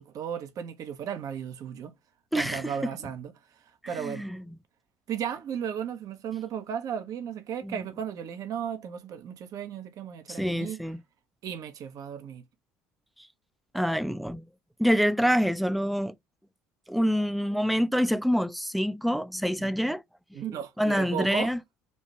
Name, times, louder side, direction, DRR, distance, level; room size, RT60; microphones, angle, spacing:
voice 1, 0.0-1.9 2.3-3.3 3.9-4.2 5.1-10.8 11.4-12.4 19.6-19.7 20.3-21.5, right 8 dB, 55° right, 0.7 m, -35 dB
voice 2, 2.3-2.9 4.0-4.4 7.6-7.8 10.3-11.0 13.7-14.4 14.8-16.1 16.9-20.0 20.3-20.4 20.8-21.6, equal, ahead, 0.5 m, -26 dB
3.2 x 2.4 x 4.1 m
hypercardioid pair, 70°, 7 cm